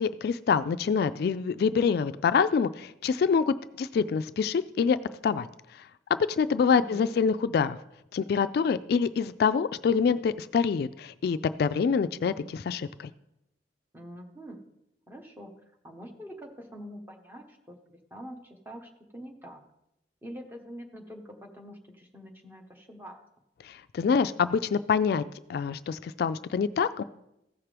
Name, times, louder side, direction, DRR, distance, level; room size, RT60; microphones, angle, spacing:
voice 1, 0.0-5.0 5.2-5.5 6.1-7.8 8.1-13.1 23.6-25.2 25.5-27.0, left 6 dB, 60° left, 13 dB, 0.3 m, -26 dB
voice 2, 6.7-7.2 13.9-14.6 15.1-15.5 15.8-19.6 20.2-23.2, equal, 10° right, 2 dB, 1.0 m, -45 dB
15.0 x 5.9 x 3.4 m, 0.85 s
head